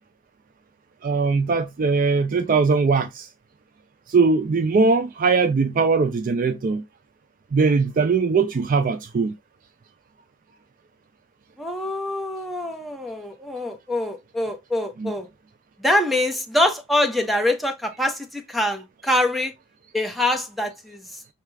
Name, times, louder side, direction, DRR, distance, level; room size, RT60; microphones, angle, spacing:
voice 1, 1.0-3.3 4.1-6.8 7.5-9.3 15.0-15.1, right 4 dB, 40° right, 0.4 m, -20 dB
voice 2, 11.6-15.3 15.8-19.5 19.9-21.0, left 1 dB, ahead, 0.8 m, -24 dB
5.7 x 2.3 x 3.2 m
head